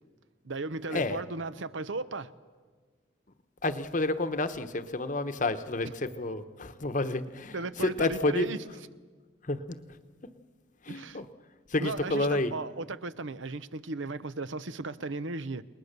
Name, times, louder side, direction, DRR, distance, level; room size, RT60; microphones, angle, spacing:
voice 1, 0.4-2.3 7.5-8.6 10.9-11.2 11.8-15.6, right 3 dB, 75° right, 0.8 m, -36 dB
voice 2, 3.6-8.5 9.4-9.8 10.8-11.3 11.7-12.5, left 2 dB, 40° left, 1.0 m, -30 dB
30.0 x 20.0 x 6.8 m
head